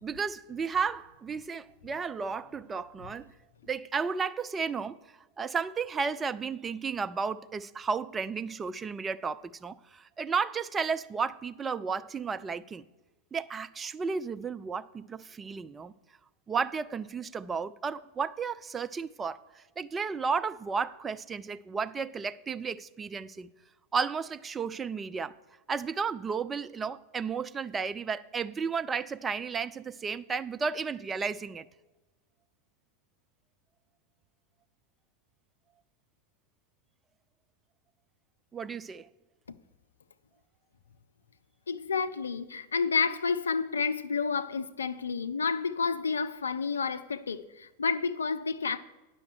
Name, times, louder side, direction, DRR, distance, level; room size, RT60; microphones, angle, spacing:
voice 1, 0.0-3.3 3.7-5.0 5.4-12.8 13.3-15.9 16.5-23.5 23.9-25.3 25.7-31.7 38.5-39.1, right 5 dB, 20° right, 0.3 m, -33 dB
voice 2, 41.7-48.8, left 5 dB, 70° left, 0.5 m, -30 dB
9.5 x 6.3 x 6.3 m
figure-of-eight pair, 90°, 0 cm